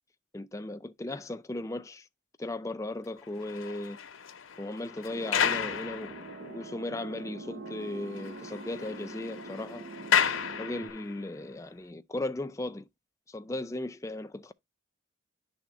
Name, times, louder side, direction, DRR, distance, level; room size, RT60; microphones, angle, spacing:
voice 1, 0.3-2.1 2.4-4.0 4.6-9.9 10.6-12.9 13.3-14.5, left 2 dB, 15° left, 0.4 m, -37 dB
sound 1, 3.2-6.7 7.2-7.3 7.7-7.8 8.0-11.3, left 8 dB, 85° left, 0.8 m, -32 dB
sound 2, 5.1-10.9, right 2 dB, 60° right, 0.8 m, -44 dB
10.5 x 3.5 x 4.1 m
head